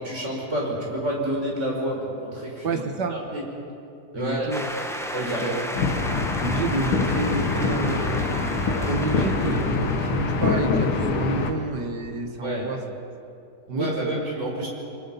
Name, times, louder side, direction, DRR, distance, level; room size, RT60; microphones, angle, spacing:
voice 1, 0.0-2.8 3.1-3.4 4.1-4.5 5.1-5.6 12.4-12.6 13.7-14.7, equal, 30° right, -3 dB, 5.7 m, -29 dB
voice 2, 2.6-3.2 4.1-4.7 5.2-5.7 6.4-12.8 13.7-14.2, right 3 dB, 55° right, 6 dB, 1.9 m, -29 dB
sound 1, 4.5-11.3, equal, ahead, 0.7 m, -34 dB
sound 2, 5.7-11.5, left 4 dB, 80° left, 2.3 m, -24 dB
29.5 x 23.5 x 5.6 m, 2.7 s
omnidirectional pair, 2.3 m